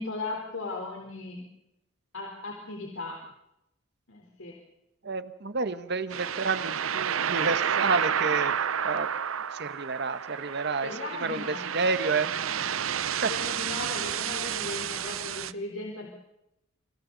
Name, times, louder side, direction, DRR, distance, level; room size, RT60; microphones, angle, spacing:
voice 1, 0.0-1.4 2.1-3.2 4.1-4.5 10.8-11.6 12.5-12.6 13.2-16.1, left 3 dB, 80° left, 0 dB, 4.1 m, -37 dB
voice 2, 5.0-9.1 9.5-12.9 13.2-13.3, right 4 dB, 55° right, 12 dB, 1.3 m, -30 dB
sound 1, 6.1-15.5, right 8 dB, 85° right, 0.7 m, -30 dB
28.5 x 26.0 x 4.1 m, 0.86 s
head